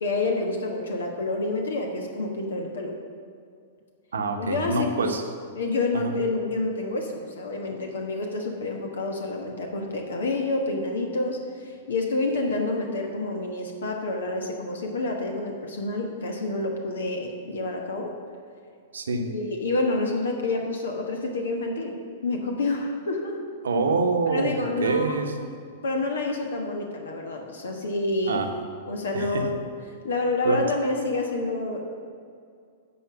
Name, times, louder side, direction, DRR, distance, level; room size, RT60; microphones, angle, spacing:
voice 1, 0.0-3.0 4.4-5.1 5.5-18.1 19.2-21.9 22.2-23.4 24.3-25.2 25.8-28.5 28.9-29.6 30.0-31.8, left 2 dB, 70° left, 2 dB, 1.3 m, -28 dB
voice 2, 4.1-5.2 5.9-6.1 18.9-19.3 23.6-24.5 24.8-25.5 28.3-28.5 29.1-29.6 30.4-30.6, right 3 dB, 70° right, 5 dB, 1.0 m, -26 dB
9.9 x 5.3 x 7.1 m, 2.3 s
figure-of-eight pair, 105°, 0 cm